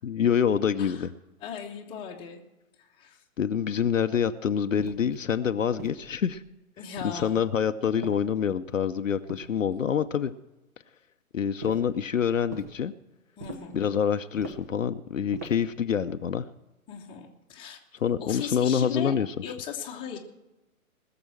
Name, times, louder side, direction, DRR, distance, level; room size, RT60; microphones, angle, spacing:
voice 1, 0.0-1.1 3.4-6.4 7.0-10.3 11.3-12.9 13.7-16.5 18.0-19.3, left 8 dB, 65° left, 10 dB, 0.7 m, -26 dB
voice 2, 1.4-2.4 2.9-3.2 6.8-7.4 13.4-13.8 16.9-17.8 18.2-19.2 19.4-20.2, left 7 dB, 10° left, 1 dB, 1.0 m, -38 dB
sound 1, 4.8-5.2 5.8-6.4 7.0-7.5 8.0-8.7 9.3-10.0 11.6-12.0 12.5-12.8 13.4-13.8 14.4-14.8 15.3-15.7, right 2 dB, 10° right, 0.4 m, -43 dB
20.0 x 6.9 x 7.5 m, 1.0 s
figure-of-eight pair, 125°, 42 cm